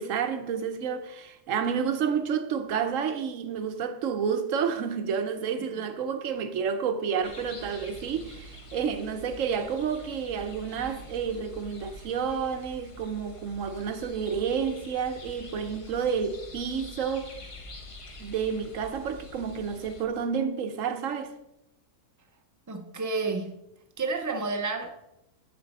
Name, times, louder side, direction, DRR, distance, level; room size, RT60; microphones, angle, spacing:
voice 1, 0.0-17.5 18.2-21.3, right 6 dB, 65° right, 1.0 m, -30 dB
sound 1, 7.2-20.1, left 1 dB, 30° left, 0.6 m, -46 dB
voice 2, 22.7-23.6 24.0-25.0, right 3 dB, 25° right, 0.4 m, -30 dB
9.0 x 6.7 x 4.1 m
omnidirectional pair, 1.6 m